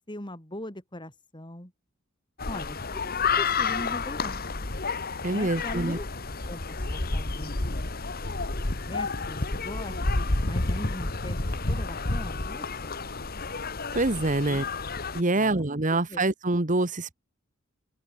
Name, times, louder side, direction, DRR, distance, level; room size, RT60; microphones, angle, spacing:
voice 1, 0.1-1.7 2.5-3.0 3.4-4.4 5.3-6.1 6.5-7.9 8.9-10.0 10.4-11.4 11.7-13.0 14.5-14.7 15.3-15.6 15.9-16.2, left 1 dB, 20° left, 4.1 m, -40 dB
sound 1, 2.4-15.2, left 3 dB, 45° left, 1.7 m, -30 dB
voice 2, 5.2-6.0 13.9-14.6 15.1-17.1, right 2 dB, 35° right, 1.4 m, -25 dB
open air
head